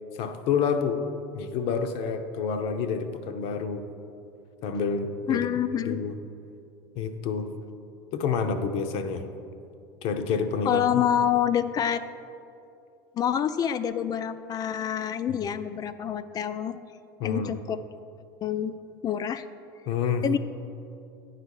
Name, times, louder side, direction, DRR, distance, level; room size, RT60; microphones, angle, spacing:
voice 1, 0.1-1.0 1.3-3.9 4.6-5.5 5.8-6.2 6.9-7.5 8.1-9.2 10.0-11.0 15.3-15.5 17.2-17.6 19.9-20.2, left 6 dB, 60° left, 8 dB, 0.7 m, -28 dB
voice 2, 5.3-6.0 10.7-12.0 13.1-16.8 17.2-17.8 18.4-18.7 19.0-19.4 20.2-20.4, left 9 dB, 35° left, 12 dB, 0.3 m, -27 dB
9.3 x 4.1 x 6.4 m, 2.6 s
supercardioid pair, 95°, 11 cm